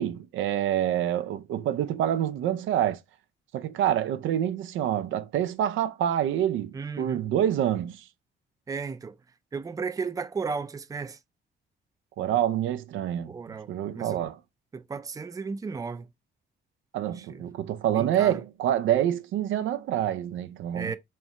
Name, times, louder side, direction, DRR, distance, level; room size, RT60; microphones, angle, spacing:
voice 1, 0.0-3.0 3.5-8.0 12.2-14.4 16.9-20.9, right 11 dB, 80° right, 0.5 m, -27 dB
voice 2, 6.7-7.2 8.7-9.2 9.5-11.2 13.3-14.2 14.7-16.1 17.1-17.5 17.9-18.4 20.7-21.0, right 5 dB, 15° right, 0.4 m, -34 dB
4.3 x 2.1 x 3.5 m
cardioid pair, 90°, 20 cm